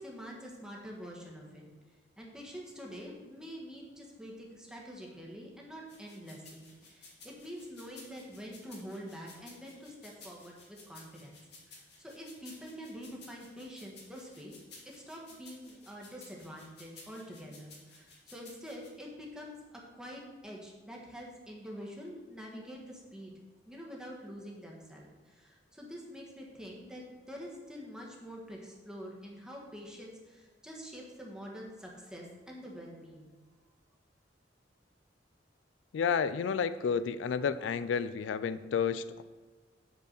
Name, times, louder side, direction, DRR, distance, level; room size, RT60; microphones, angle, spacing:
voice 1, 0.0-1.6 2.2-11.4 11.6-14.6 14.8-23.3 23.7-33.3, equal, 5° right, -2 dB, 1.4 m, -46 dB
sound 1, 5.9-18.9, left 3 dB, 65° left, 2.0 m, -55 dB
voice 2, 35.9-39.2, left 6 dB, 90° left, 14 dB, 0.4 m, -31 dB
7.8 x 4.7 x 6.5 m, 1.3 s
head